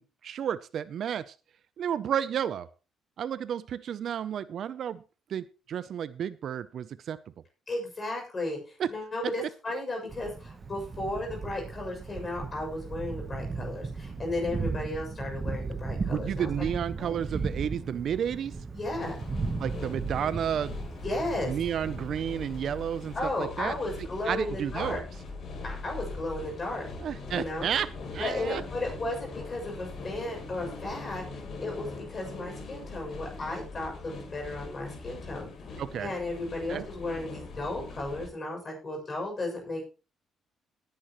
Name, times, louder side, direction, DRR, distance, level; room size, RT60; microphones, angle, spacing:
voice 1, 0.0-1.3 1.8-2.7 3.2-5.0 5.3-7.2 8.8-8.9 16.1-18.6 19.6-20.8 21.5-23.8 24.3-25.0 27.0-28.6 35.8-36.1 36.7-36.8, right 9 dB, 55° right, 15 dB, 0.5 m, -32 dB
voice 2, 7.7-16.7 17.0-17.1 18.7-19.2 21.0-21.5 23.1-25.0 25.6-26.8 27.3-27.7 28.2-35.5 36.0-39.8, left 2 dB, 25° left, 1 dB, 6.9 m, -34 dB
Thunder, 10.1-23.4, right 4 dB, 25° right, 1.0 m, -36 dB
sound 1, 19.0-38.3, left 3 dB, 50° left, 3.7 m, -41 dB
18.0 x 10.5 x 3.1 m, 0.33 s
cardioid pair, 150°, 0 cm